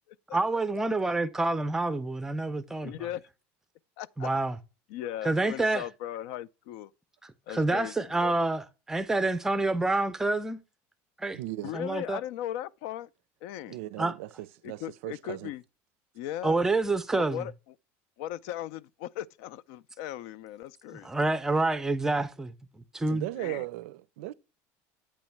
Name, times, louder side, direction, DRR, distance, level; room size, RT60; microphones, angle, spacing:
voice 1, 0.3-3.1 4.2-4.6 5.2-5.8 7.2-10.6 11.2-11.4 11.7-12.2 14.0-14.1 16.4-17.5 21.0-22.5 22.9-23.3, right 2 dB, 5° right, 0.5 m, -28 dB
voice 2, 2.8-3.2 4.0-4.3 4.9-6.9 7.5-8.4 11.6-13.1 13.4-13.8 14.6-15.6 16.1-16.6 17.1-17.5 18.2-21.1 23.4-23.6, left 12 dB, 70° left, 0.4 m, -38 dB
voice 3, 11.3-11.7 13.7-15.5 23.1-24.3, right 16 dB, 85° right, 0.5 m, -37 dB
8.7 x 3.1 x 5.8 m
cardioid pair, 160°, 7 cm